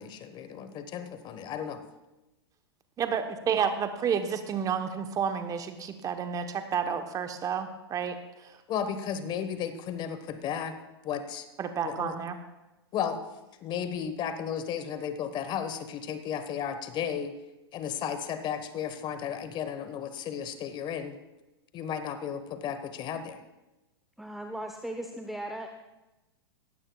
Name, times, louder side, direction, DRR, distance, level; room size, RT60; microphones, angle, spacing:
voice 1, 0.0-1.8 8.7-10.7 11.0-11.5 11.8-12.2 12.9-13.2 13.6-17.3 17.7-21.2 21.7-23.4, left 8 dB, 35° left, 10 dB, 1.3 m, -34 dB
voice 2, 3.0-8.6 11.6-12.3, right 7 dB, 25° right, 8 dB, 1.0 m, -30 dB
voice 3, 24.2-25.7, right 1 dB, ahead, 4 dB, 0.8 m, -37 dB
18.0 x 16.0 x 2.4 m, 1.0 s
hypercardioid pair, 105°, 14 cm